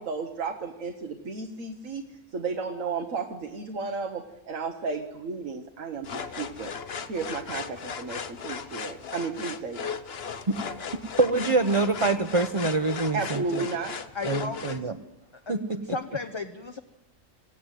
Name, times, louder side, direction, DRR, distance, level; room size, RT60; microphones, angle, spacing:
voice 1, 0.0-2.0 2.3-6.7 7.1-9.9 13.1-14.0, right 4 dB, 80° right, 5 dB, 1.7 m, -33 dB
sound 1, 6.0-14.8, left 6 dB, 55° left, 1.2 m, -37 dB
voice 2, 10.5-13.7 14.2-14.9 15.5-15.8, right 3 dB, 30° right, 7 dB, 0.9 m, -26 dB
voice 3, 14.1-14.9 15.5-16.8, left 4 dB, 25° left, 5 dB, 0.9 m, -35 dB
25.0 x 16.5 x 9.3 m, 1.0 s
omnidirectional pair, 1.3 m